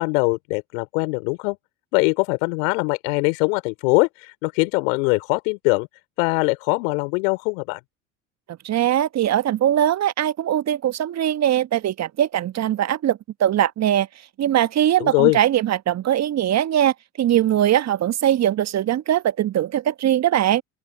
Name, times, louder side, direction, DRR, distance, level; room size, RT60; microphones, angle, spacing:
voice 1, 0.0-1.6 1.9-5.9 6.2-7.8 15.0-15.4, left 31 dB, 65° left, 3.5 m, -22 dB
voice 2, 8.6-14.1 14.4-20.6, right 11 dB, 40° right, 1.3 m, -21 dB
open air
figure-of-eight pair, 65°, 41 cm